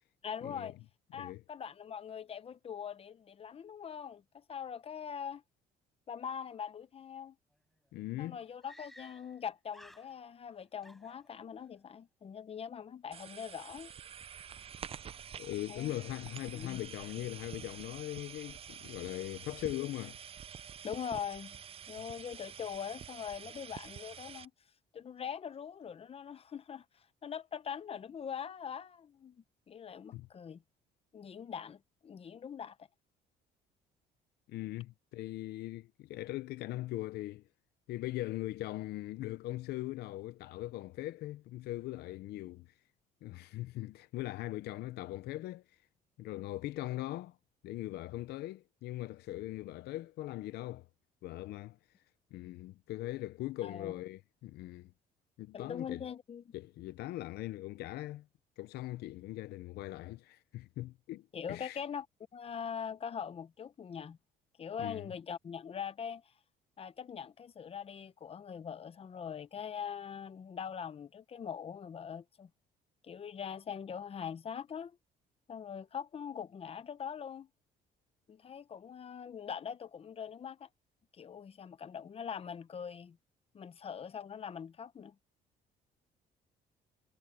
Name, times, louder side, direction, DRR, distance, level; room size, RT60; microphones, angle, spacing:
voice 1, 0.2-0.8 1.1-5.4 6.1-7.4 8.2-13.9 15.7-15.9 16.5-16.8 20.8-21.6 21.9-24.5 24.9-30.6 31.1-32.8 53.6-53.9 55.5-56.5 61.3-62.1 62.3-64.2 64.6-66.3 66.8-72.5 73.0-75.0 75.5-77.5 78.3-80.7 81.1-83.2 83.5-85.1, left 7 dB, 35° left, 1.0 m, -42 dB
Screaming, 7.5-7.6 7.8-7.9 8.6-9.4 9.7-10.5 10.8-11.7, equal, ahead, 4.6 m, -57 dB
voice 2, 7.9-8.4 15.4-20.2 30.1-30.3 34.5-37.4 37.9-42.7 43.2-45.8 46.2-47.4 47.6-50.9 51.2-51.8 52.3-54.9 55.4-56.1 56.5-58.3 58.6-61.8 64.8-65.1, left 16 dB, 70° left, 0.6 m, -40 dB
sound 1, 13.1-24.5, right 8 dB, 35° right, 0.6 m, -48 dB
cardioid pair, 110°, 17 cm